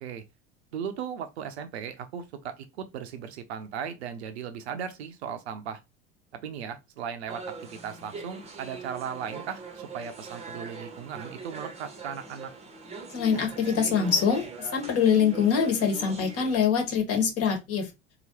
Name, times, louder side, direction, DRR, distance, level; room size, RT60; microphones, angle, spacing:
voice 1, 0.7-5.8 6.4-7.4 7.7-12.5, right 7 dB, 60° right, 0.7 m, -37 dB
sound 1, 7.3-16.7, right 3 dB, 15° right, 0.9 m, -42 dB
voice 2, 13.1-17.9, left 7 dB, 40° left, 1.4 m, -24 dB
3.9 x 3.0 x 2.8 m
figure-of-eight pair, 75°, 37 cm